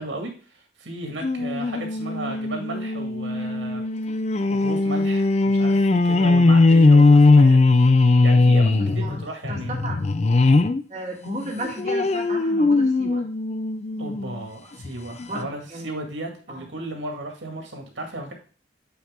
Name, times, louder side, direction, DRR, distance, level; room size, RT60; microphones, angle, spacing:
voice 1, 0.0-3.8 4.5-7.9 8.2-9.9 14.0-18.3, right 1 dB, 85° right, 2 dB, 2.0 m, -35 dB
sound 1, 1.2-10.8 11.3-14.3 14.8-14.9 15.2-15.3, left 3 dB, 35° left, 0.4 m, -19 dB
voice 2, 8.8-9.2 9.5-10.0 10.9-13.2 15.3-15.9 16.5-16.6, right 1 dB, 35° right, -3 dB, 1.6 m, -34 dB
8.4 x 4.6 x 3.7 m, 0.38 s
head